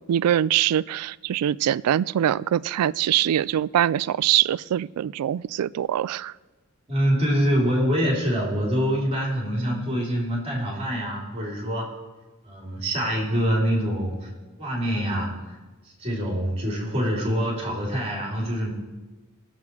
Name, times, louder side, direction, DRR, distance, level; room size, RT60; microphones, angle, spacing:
voice 1, 0.1-6.3, right 11 dB, 85° right, 18 dB, 0.3 m, -23 dB
voice 2, 6.9-11.9 12.4-14.3 14.6-15.6 15.9-18.7, equal, 25° right, -2 dB, 3.3 m, -25 dB
20.0 x 7.3 x 4.7 m, 1.2 s
head